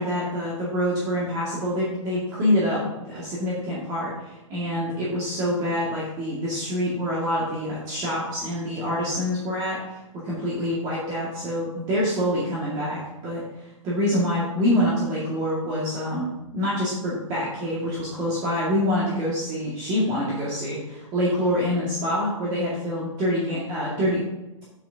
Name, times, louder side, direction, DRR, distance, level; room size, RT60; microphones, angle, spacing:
voice 1, 0.0-24.2, equal, 20° right, -7 dB, 2.0 m, -26 dB
8.8 x 8.3 x 2.8 m, 0.97 s
hypercardioid pair, 160°, 17 cm